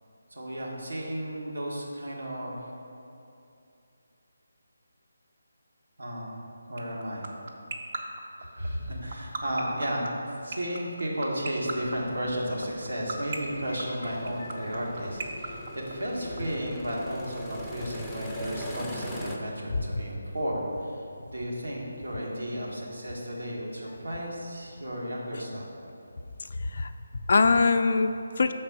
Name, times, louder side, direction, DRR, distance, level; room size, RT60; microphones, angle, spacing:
voice 1, 0.3-2.7 6.0-6.4 6.7-7.3 8.4-10.1 10.4-25.6, equal, 80° right, -4 dB, 1.5 m, -33 dB
sound 1, 6.8-16.4, right 4 dB, 45° right, 0.6 m, -33 dB
sound 2, 12.0-19.4, equal, ahead, 0.5 m, -41 dB
voice 2, 19.7-20.0 25.3-25.4 26.4-28.5, left 4 dB, 55° left, 8 dB, 0.3 m, -24 dB
5.9 x 4.2 x 5.3 m, 2.7 s
figure-of-eight pair, 155°, 0 cm